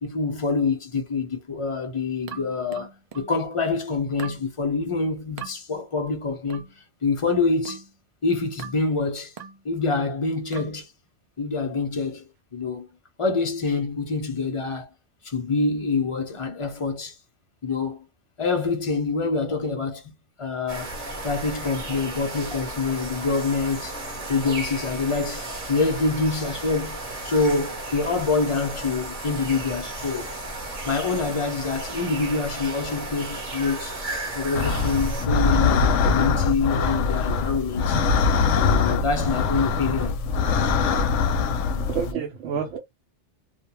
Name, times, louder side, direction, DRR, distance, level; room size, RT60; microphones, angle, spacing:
voice 1, 0.0-2.9 3.1-6.7 7.0-7.8 8.2-9.3 9.6-10.9 11.4-12.9 13.2-14.9 15.2-17.1 17.6-18.0 18.4-20.0 20.4-20.9 21.2-24.0 24.3-30.3 30.9-34.0 34.3-38.0 38.6-40.2, left 4 dB, 35° left, 0.6 m, -26 dB
sound 1, 2.3-3.4 4.2-4.5 5.4-5.6 6.5-6.8 7.6-7.9 8.6-8.9 9.4-9.6 10.5-10.8, right 7 dB, 60° right, 0.4 m, -40 dB
sound 2, 20.7-35.3, right 2 dB, 35° right, 0.9 m, -34 dB
sound 3, 34.5-42.1, left 5 dB, 85° left, 0.9 m, -22 dB
voice 2, 41.4-42.8, right 7 dB, 85° right, 1.0 m, -30 dB
2.4 x 2.2 x 2.9 m
omnidirectional pair, 1.2 m